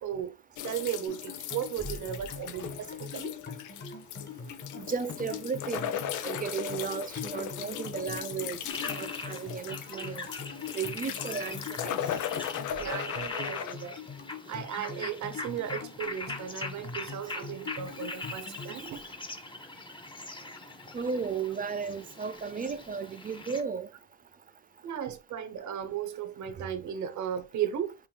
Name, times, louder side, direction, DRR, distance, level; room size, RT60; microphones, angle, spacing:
voice 1, 0.0-0.4 0.6-3.3 12.8-14.0 14.5-19.0 24.8-28.1, right 9 dB, 70° right, 1.0 m, -36 dB
sound 1, 0.6-13.7, left 10 dB, 80° left, 0.6 m, -38 dB
sound 2, 1.1-18.9, left 5 dB, 35° left, 1.5 m, -43 dB
voice 2, 4.8-8.6 8.9-10.3 10.7-11.6 11.8-12.0 20.9-23.9, right 6 dB, 30° right, 0.6 m, -34 dB
sound 3, 8.7-23.6, left 2 dB, 15° left, 1.0 m, -42 dB
5.7 x 2.6 x 2.2 m
cardioid pair, 90°, 30 cm